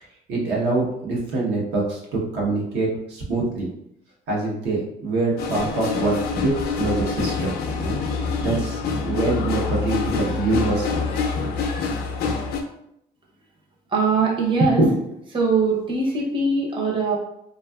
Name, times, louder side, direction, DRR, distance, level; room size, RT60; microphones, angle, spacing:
voice 1, 0.3-3.7 4.3-8.0 8.4-11.0, right 3 dB, 85° right, -3 dB, 0.8 m, -25 dB
sound 1, 5.4-12.6, left 5 dB, 65° left, 0.4 m, -26 dB
voice 2, 13.9-15.0 15.3-17.2, right 3 dB, 30° right, -2 dB, 0.6 m, -20 dB
2.5 x 2.3 x 2.2 m, 0.77 s
cardioid pair, 110°, 17 cm